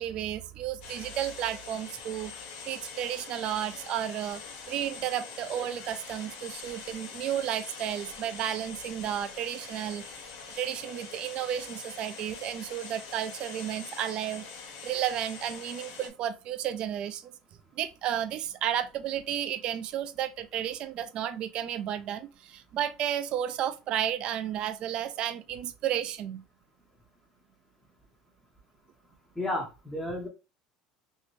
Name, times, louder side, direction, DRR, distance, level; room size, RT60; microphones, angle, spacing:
voice 1, 0.0-2.3 2.6-4.4 4.7-10.0 10.5-14.4 14.8-17.3 17.8-26.4, right 10 dB, 40° right, 0.3 m, -32 dB
sound 1, 0.8-16.1, left 5 dB, 80° left, 0.9 m, -44 dB
voice 2, 29.4-30.3, left 1 dB, 5° left, 0.6 m, -32 dB
3.2 x 2.6 x 3.1 m
cardioid pair, 160°, 2 cm